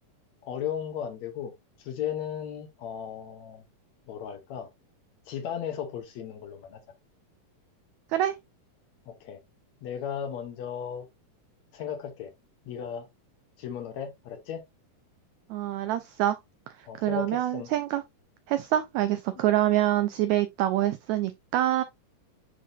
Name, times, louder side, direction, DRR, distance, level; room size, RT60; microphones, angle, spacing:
voice 1, 0.4-1.5 1.8-3.6 4.1-4.7 5.3-6.8 9.1-9.4 9.8-11.1 11.7-12.3 12.7-13.1 13.6-14.6 16.9-17.7, left 8 dB, 65° left, 2.1 m, -35 dB
voice 2, 15.5-16.4 16.8-18.0 18.5-21.8, right 13 dB, 90° right, 1.6 m, -26 dB
10.0 x 3.6 x 2.6 m
omnidirectional pair, 3.8 m